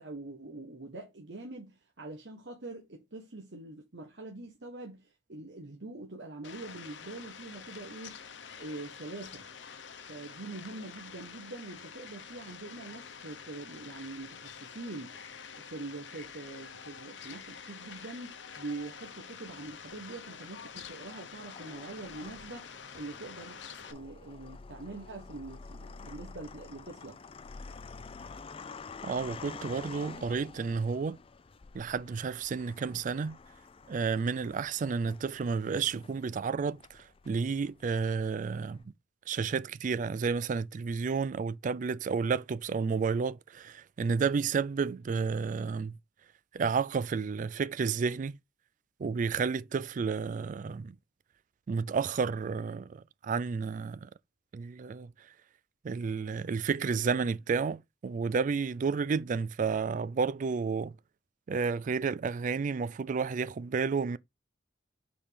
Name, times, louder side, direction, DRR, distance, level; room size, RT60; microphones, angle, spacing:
voice 1, 0.0-8.2 8.6-9.5 10.1-15.2 15.6-27.2, right 2 dB, 70° right, 1.2 m, -44 dB
Fowl, 6.4-23.9, left 6 dB, 75° left, 0.9 m, -47 dB
sound 1, 19.6-20.3 21.0-38.8, left 4 dB, 30° left, 0.4 m, -49 dB
voice 2, 29.0-31.2 31.7-33.4 33.9-38.8 39.3-46.0 46.5-48.3 49.0-51.0 51.7-54.1 54.5-55.1 55.8-60.9 61.5-64.2, right 5 dB, 45° right, 0.3 m, -31 dB
5.3 x 4.4 x 4.9 m
head